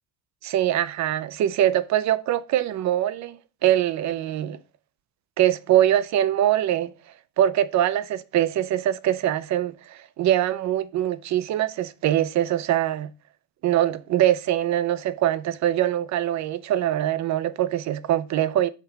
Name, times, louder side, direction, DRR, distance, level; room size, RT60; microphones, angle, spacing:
voice 1, 0.4-4.6 5.4-6.9 7.4-13.1 13.6-18.7, right 12 dB, 45° right, 0.5 m, -23 dB
5.8 x 4.8 x 4.5 m
cardioid pair, 135°, 39 cm